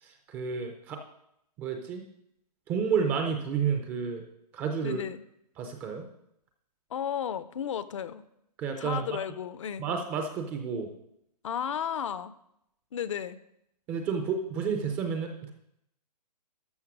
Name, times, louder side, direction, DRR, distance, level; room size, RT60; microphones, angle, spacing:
voice 1, 0.0-1.0 1.6-2.1 2.7-4.2 4.5-5.0 5.6-6.1 8.6-9.2 9.8-10.9 13.9-15.5, right 6 dB, 10° right, 5 dB, 0.4 m, -31 dB
voice 2, 4.8-5.2 6.9-8.2 8.8-9.8 11.4-12.3 12.9-13.4, left 8 dB, 45° left, 14 dB, 0.6 m, -33 dB
13.0 x 5.7 x 6.0 m, 0.78 s
hypercardioid pair, 160°, 21 cm